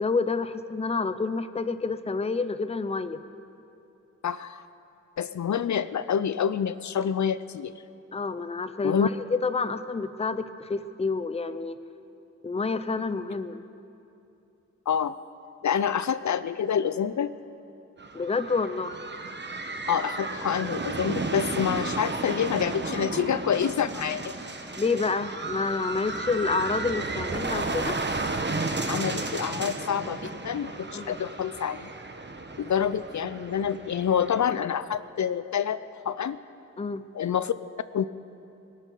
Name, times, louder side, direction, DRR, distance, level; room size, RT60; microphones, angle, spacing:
voice 1, 0.0-3.2 8.1-11.8 12.4-13.6 18.1-18.9 24.8-28.0 30.9-31.2 36.8-37.1, left 4 dB, 20° left, 13 dB, 0.5 m, -28 dB
voice 2, 4.2-4.6 5.2-7.7 8.8-9.1 14.9-15.1 15.6-17.3 19.9-24.3 28.9-31.9 32.6-36.4 37.1-37.5 37.9-38.1, left 8 dB, 75° left, 14 dB, 0.5 m, -27 dB
sound 1, 18.0-34.6, right 3 dB, 35° right, 1.0 m, -33 dB
22.0 x 12.5 x 4.6 m, 2.8 s
wide cardioid pair, 100°, 29 cm